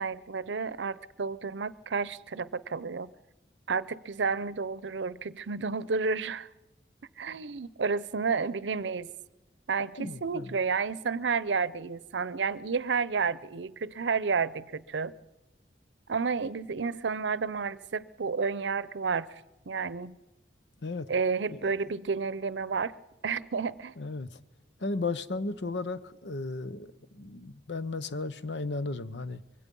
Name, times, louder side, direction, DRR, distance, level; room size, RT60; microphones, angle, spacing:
voice 1, 0.0-3.1 3.7-6.5 7.2-9.1 9.7-15.1 16.1-19.3 19.7-20.2 21.1-22.9 23.2-23.9, right 5 dB, 90° right, 0.6 m, -31 dB
voice 2, 10.0-10.6 20.8-21.1 21.5-21.8 24.0-24.4 24.8-29.4, left 3 dB, 80° left, 0.9 m, -35 dB
24.5 x 22.0 x 5.4 m
head